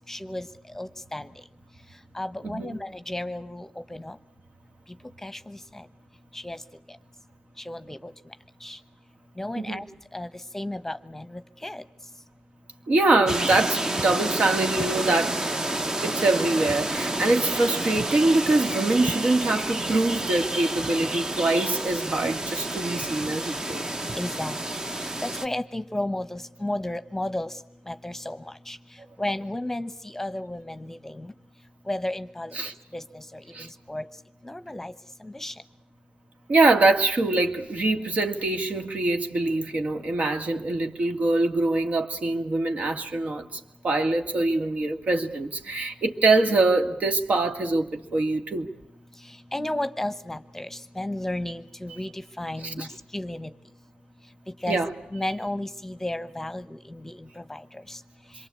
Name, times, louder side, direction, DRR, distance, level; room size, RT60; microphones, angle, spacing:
voice 1, 0.1-0.5 0.7-1.3 2.1-4.1 5.2-5.6 6.3-6.6 7.7-8.1 8.6-8.8 9.4-9.8 10.1-10.3 10.5-11.8 24.2-24.6 25.0-27.5 27.9-28.4 28.7-28.8 29.2-31.3 31.9-32.5 32.9-33.2 33.6-34.0 34.4-34.9 35.2-35.5 49.5-52.9 53.1-53.5 54.6-54.8 55.1-57.6 57.9-58.0, left 1 dB, 15° left, 1.0 m, -33 dB
voice 2, 2.4-2.8 9.6-9.8 12.9-15.4 16.0-23.8 32.5-32.7 33.5-33.7 36.5-48.7 52.6-52.9 54.7-54.9, right 2 dB, 60° right, 2.2 m, -24 dB
sound 1, 13.3-25.5, right 1 dB, 25° right, 0.9 m, -29 dB
27.0 x 23.0 x 8.5 m
cardioid pair, 70°, 3 cm